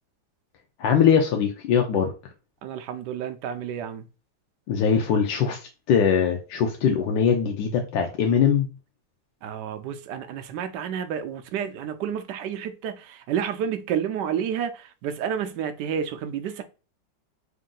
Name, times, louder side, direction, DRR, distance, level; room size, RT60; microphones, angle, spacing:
voice 1, 0.8-2.1 4.7-8.7, left 7 dB, 85° left, 1.3 m, -21 dB
voice 2, 2.6-4.1 9.4-16.6, right 8 dB, 75° right, 1.2 m, -30 dB
3.6 x 2.5 x 3.7 m
omnidirectional pair, 1.9 m